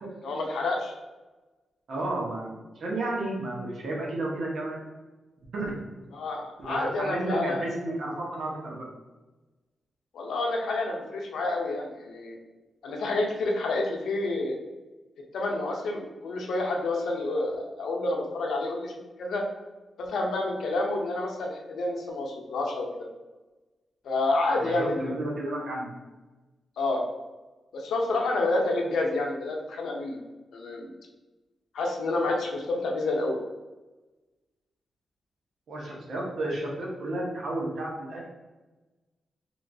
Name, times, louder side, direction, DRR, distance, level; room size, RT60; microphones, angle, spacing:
voice 1, 0.2-0.9 6.1-7.6 10.1-12.4 12.8-14.6 15.3-18.9 19.2-19.4 20.0-23.1 24.0-25.1 26.8-27.0 27.7-30.2 30.5-30.9 31.7-33.4, left 2 dB, 80° left, 1 dB, 0.6 m, -29 dB
voice 2, 1.9-4.8 5.5-5.7 6.6-8.8 24.6-25.9 35.7-38.3, right 2 dB, 70° right, -3 dB, 0.9 m, -32 dB
3.1 x 2.9 x 2.6 m, 1.2 s
cardioid pair, 80°, 0 cm